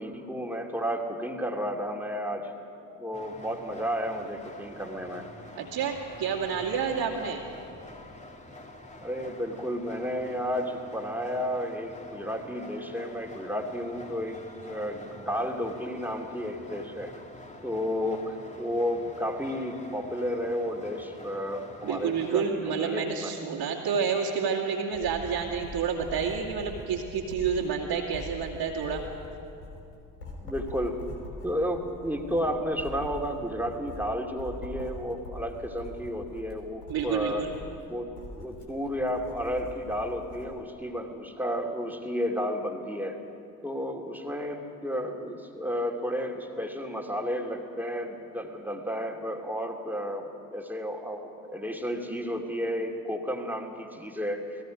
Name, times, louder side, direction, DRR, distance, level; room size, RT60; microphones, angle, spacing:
voice 1, 0.0-2.5 3.0-5.3 9.0-17.1 17.6-23.3 30.4-31.0 31.4-37.5 37.9-38.1 38.4-43.2 43.6-54.6, equal, 5° right, 2 dB, 2.8 m, -32 dB
sound 1, 3.1-22.4, left 1 dB, 15° left, 2.3 m, -47 dB
voice 2, 5.5-7.4 21.8-29.0 36.9-37.5, right 6 dB, 50° right, -5 dB, 2.4 m, -29 dB
Writing, 24.9-40.5, left 1 dB, 80° left, 3.6 m, -43 dB
30.0 x 19.5 x 5.2 m, 2.6 s
figure-of-eight pair, 50°, 49 cm